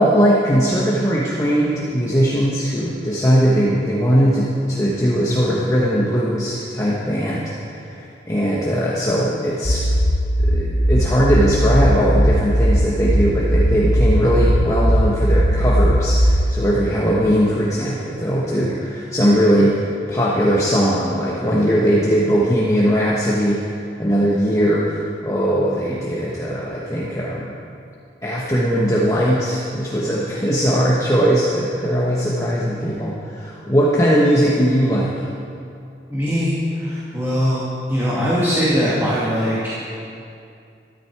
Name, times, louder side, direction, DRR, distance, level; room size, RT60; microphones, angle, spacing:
voice 1, 0.0-9.8 10.4-27.5 28.2-35.1, equal, 20° left, -5 dB, 1.2 m, -19 dB
sound 1, 9.6-16.5, equal, 45° left, 0.9 m, -18 dB
voice 2, 36.1-39.9, equal, 15° right, -9 dB, 2.2 m, -21 dB
13.5 x 13.0 x 4.7 m, 2.5 s
head